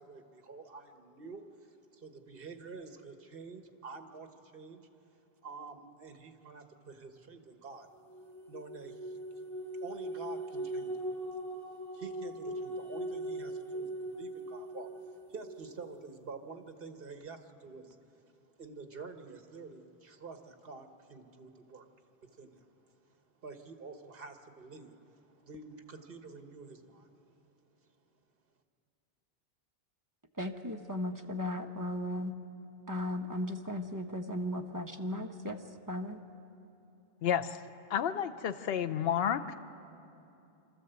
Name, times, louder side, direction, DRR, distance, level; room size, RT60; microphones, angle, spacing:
voice 1, 0.0-4.9 5.4-7.9 8.5-9.5 9.8-11.4 11.7-18.0 18.6-21.9 22.2-22.8 23.4-27.1, right 4 dB, 60° right, 6 dB, 1.5 m, -48 dB
sound 1, 8.1-15.9, right 1 dB, ahead, 1.5 m, -40 dB
voice 2, 30.4-32.3 32.9-36.2, left 1 dB, 20° right, 3 dB, 0.9 m, -36 dB
voice 3, 37.2-37.6 37.9-39.5, left 9 dB, 70° left, 10 dB, 0.9 m, -31 dB
26.0 x 13.0 x 8.1 m, 2.8 s
omnidirectional pair, 1.1 m